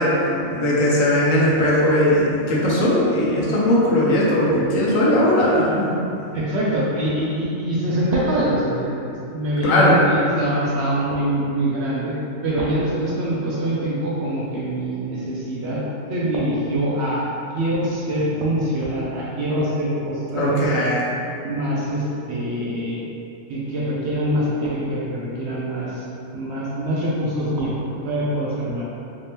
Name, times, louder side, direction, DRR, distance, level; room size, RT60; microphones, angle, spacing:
voice 1, 0.0-5.9 9.6-9.9 20.3-21.0, left 1 dB, 70° left, -6 dB, 1.2 m, -18 dB
voice 2, 6.3-12.2 12.4-15.8 16.1-17.3 17.5-20.7 21.4-23.0 23.5-26.0 26.3-27.7 28.0-28.8, right 1 dB, 60° right, -7 dB, 0.8 m, -24 dB
3.4 x 2.8 x 3.3 m, 2.6 s
omnidirectional pair, 1.4 m